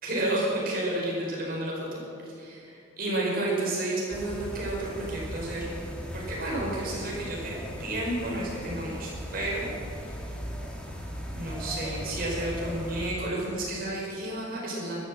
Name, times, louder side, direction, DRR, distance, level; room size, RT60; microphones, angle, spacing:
voice 1, 0.0-2.0 2.4-5.7 6.1-7.5 7.8-9.7 10.0-10.2 11.3-15.0, right 1 dB, 45° right, -3 dB, 5.0 m, -31 dB
sound 1, 4.1-13.1, equal, 5° left, 1.7 m, -38 dB
13.5 x 12.5 x 7.6 m, 2.5 s
head